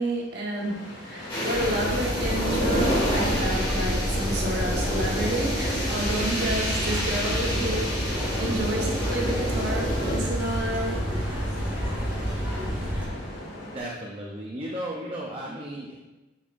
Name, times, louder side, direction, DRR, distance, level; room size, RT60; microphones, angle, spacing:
voice 1, 0.0-11.1, right 1 dB, 60° right, -2 dB, 1.4 m, -30 dB
sound 1, 0.5-13.8, left 1 dB, 50° left, 1.8 m, -40 dB
sound 2, 1.3-10.2, equal, 25° left, 2.0 m, -29 dB
sound 3, 1.5-13.0, equal, 10° right, 2.0 m, -29 dB
voice 2, 13.7-16.1, right 1 dB, 30° right, -2 dB, 0.7 m, -35 dB
8.1 x 5.6 x 2.6 m, 1.1 s
head